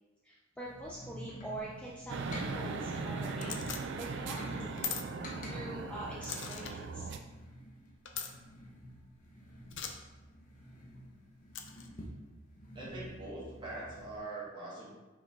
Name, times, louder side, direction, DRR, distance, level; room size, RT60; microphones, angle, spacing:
voice 1, 0.2-4.8 5.4-7.1, right 1 dB, 5° left, -6 dB, 0.6 m, -45 dB
sound 1, 0.6-14.2, equal, 40° left, 1.0 m, -49 dB
sound 2, 2.1-7.2, right 4 dB, 60° right, 0.5 m, -39 dB
sound 3, 3.4-3.8 4.8-5.0 6.2-6.7 8.0-8.3 9.7-9.9 11.5-11.9, left 7 dB, 60° left, 0.6 m, -39 dB
voice 2, 12.7-14.9, right 2 dB, 25° right, -7 dB, 1.9 m, -43 dB
5.6 x 4.8 x 3.7 m, 1.2 s
head